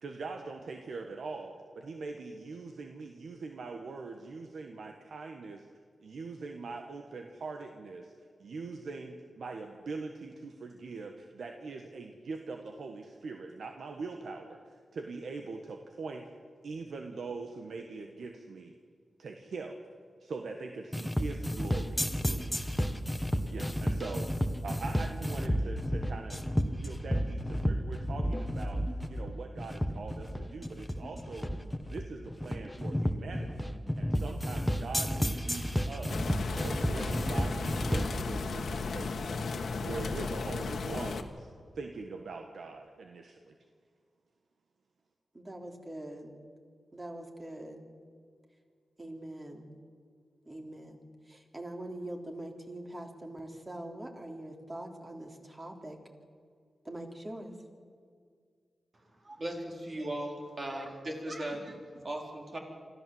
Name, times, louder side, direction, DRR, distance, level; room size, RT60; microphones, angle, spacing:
voice 1, 0.0-5.7 6.0-8.1 8.4-16.3 16.6-18.7 19.2-19.8 20.2-22.6 23.5-24.3 24.6-26.4 26.8-33.6 34.0-41.5 41.7-43.5, right 4 dB, 80° right, 4 dB, 1.4 m, -42 dB
sound 1, 20.9-38.2, equal, 5° left, 1.5 m, -31 dB
sound 2, 36.1-41.2, left 4 dB, 75° left, 1.6 m, -35 dB
voice 2, 45.3-46.4 46.9-47.9 49.0-49.7 50.5-56.0 56.9-57.5, right 1 dB, 25° right, 3 dB, 3.4 m, -43 dB
voice 3, 59.2-62.6, right 1 dB, 50° right, 1 dB, 4.6 m, -38 dB
25.0 x 14.5 x 7.9 m, 2.1 s
cardioid pair, 75°, 0 cm